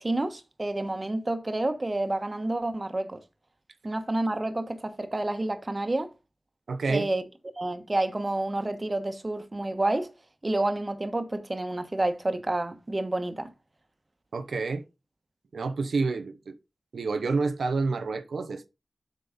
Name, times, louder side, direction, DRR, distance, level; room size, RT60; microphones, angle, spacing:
voice 1, 0.0-3.2 3.8-6.1 6.9-7.2 7.6-10.1 10.4-13.5, right 2 dB, 30° right, 1.2 m, -29 dB
voice 2, 6.7-7.1 14.3-14.8 15.5-16.6 16.9-18.7, right 4 dB, 85° right, 0.8 m, -28 dB
8.0 x 5.2 x 3.6 m
wide cardioid pair, 70°, 0 cm